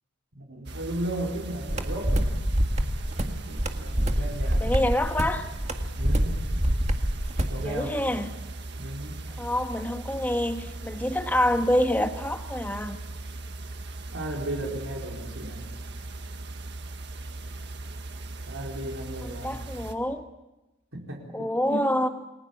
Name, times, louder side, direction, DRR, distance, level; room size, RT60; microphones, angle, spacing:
voice 1, 0.4-2.3 3.2-4.8 6.0-6.4 7.5-8.0 8.8-9.2 14.1-15.7 18.4-19.6 20.9-22.0, right 1 dB, 80° right, -1 dB, 4.8 m, -35 dB
sound 1, 0.6-19.9, right 2 dB, 60° right, 1.8 m, -39 dB
sound 2, 1.7-7.6, equal, 35° right, 1.9 m, -26 dB
voice 2, 4.6-5.5 7.6-8.3 9.4-13.0 19.2-20.2 21.3-22.1, left 1 dB, 10° left, 6 dB, 1.5 m, -26 dB
29.0 x 20.5 x 7.4 m, 1.0 s
head